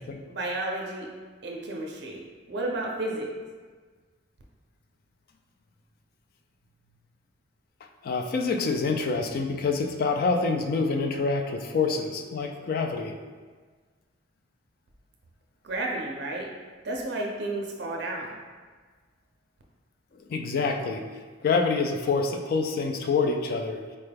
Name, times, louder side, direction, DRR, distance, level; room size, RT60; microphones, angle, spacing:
voice 1, 0.3-1.1 1.4-2.2 2.5-3.3 15.6-16.5 16.8-18.3, right 2 dB, 55° right, -1 dB, 0.4 m, -32 dB
voice 2, 8.0-13.1 20.3-21.0 21.4-23.8, left 4 dB, 50° left, 4 dB, 0.3 m, -26 dB
4.1 x 2.2 x 3.3 m, 1.5 s
head